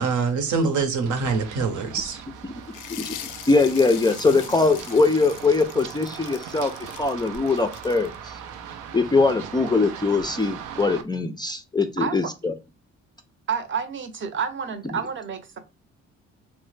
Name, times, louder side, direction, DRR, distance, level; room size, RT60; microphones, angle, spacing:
voice 1, 0.0-2.2, right 4 dB, 70° right, 0.9 m, -24 dB
Run, 1.1-11.0, right 8 dB, 85° right, 0.5 m, -39 dB
sound 1, 2.7-8.2, left 11 dB, 90° left, 0.5 m, -41 dB
voice 2, 2.9-6.7 7.0-8.4 8.9-12.5, left 3 dB, 15° left, 0.3 m, -22 dB
voice 3, 13.5-15.6, right 6 dB, 40° right, 0.7 m, -29 dB
3.0 x 2.1 x 3.1 m
cardioid pair, 90°, 30 cm